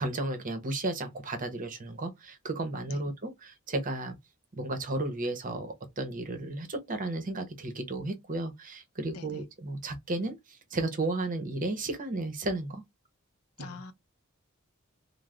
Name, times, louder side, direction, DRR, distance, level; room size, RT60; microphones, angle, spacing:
voice 1, 0.0-4.2 4.5-12.8 13.7-13.8, right 2 dB, 40° right, 0.7 m, -33 dB
voice 2, 9.1-9.4 13.6-13.9, left 4 dB, 80° left, 0.5 m, -44 dB
3.0 x 2.0 x 3.6 m
head